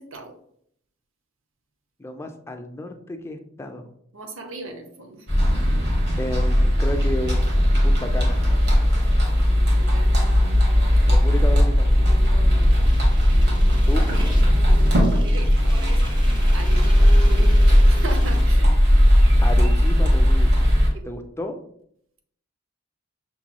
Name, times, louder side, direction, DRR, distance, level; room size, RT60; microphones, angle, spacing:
voice 1, 2.0-3.9 6.2-7.5 7.8-8.6 11.0-12.0 13.9-14.1 19.4-20.5 21.0-21.6, left 1 dB, 15° left, 5 dB, 0.3 m, -32 dB
voice 2, 4.1-5.2 9.5-10.7 12.1-12.7 13.3-13.8 14.5-16.0 16.5-17.5 17.9-18.7, right 2 dB, 85° right, 5 dB, 0.7 m, -38 dB
sound 1, 5.3-20.9, equal, 60° right, 1.1 m, -17 dB
sound 2, 12.4-18.4, equal, 25° right, 1.4 m, -28 dB
6.0 x 2.9 x 2.2 m, 0.68 s
head